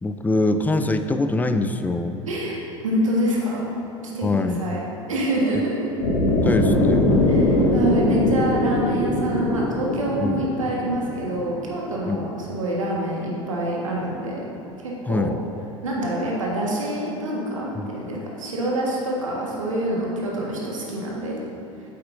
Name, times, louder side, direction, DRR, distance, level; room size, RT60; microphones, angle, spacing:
voice 1, 0.0-2.2 4.2-4.6 6.4-7.2 10.2-10.5 12.0-12.2 15.1-15.4 17.8-17.9, left 2 dB, 10° left, 8 dB, 0.4 m, -23 dB
voice 2, 2.3-3.7 4.1-4.8 5.1-5.9 7.3-14.4 14.8-15.3 15.8-21.4, right 1 dB, 80° right, -4 dB, 1.5 m, -26 dB
sound 1, 6.0-12.1, left 1 dB, 75° left, 1.7 m, -21 dB
8.5 x 8.1 x 2.6 m, 3.0 s
figure-of-eight pair, 80°, 16 cm